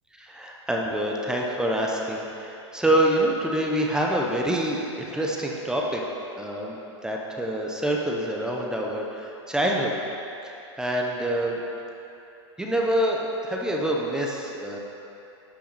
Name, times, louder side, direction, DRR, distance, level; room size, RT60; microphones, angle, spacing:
voice 1, 0.2-6.0 6.4-6.8 7.0-9.9 10.4-11.6 12.6-14.8, right 1 dB, 5° right, -1 dB, 0.8 m, -26 dB
12.5 x 5.7 x 4.2 m, 2.9 s
supercardioid pair, 140°, 15 cm